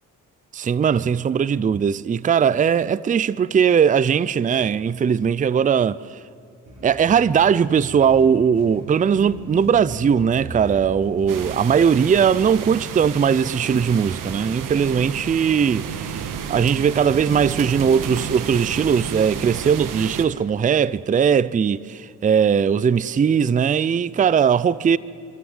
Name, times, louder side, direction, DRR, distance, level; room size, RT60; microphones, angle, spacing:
voice 1, 0.5-6.0 6.8-16.2 16.5-25.0, right 7 dB, 25° right, 0.5 m, -19 dB
sound 1, 6.6-13.2, right 1 dB, 60° right, 6.2 m, -38 dB
sound 2, 11.3-20.2, right 7 dB, 75° right, 1.5 m, -31 dB
26.5 x 13.5 x 9.5 m
cardioid pair, 85°, 33 cm